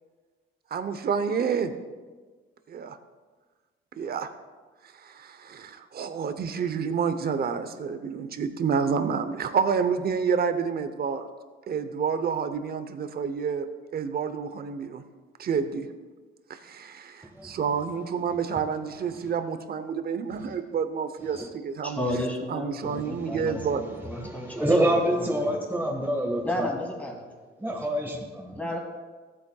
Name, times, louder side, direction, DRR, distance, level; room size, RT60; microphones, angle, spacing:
voice 1, 0.7-1.7 2.7-3.0 4.0-4.3 4.9-11.3 11.7-13.7 13.9-15.0 15.4-15.9 16.5-22.0 22.5-24.0, right 6 dB, 50° right, 10 dB, 0.8 m, -29 dB
voice 2, 21.8-23.0 23.2-25.6 26.4-27.3 27.7-27.8 28.6-28.8, left 1 dB, 5° left, -1 dB, 2.7 m, -33 dB
voice 3, 22.8-23.6 24.2-26.7 27.6-28.6, right 1 dB, 10° right, -2 dB, 1.6 m, -28 dB
14.5 x 8.5 x 2.3 m, 1.4 s
cardioid pair, 90°, 20 cm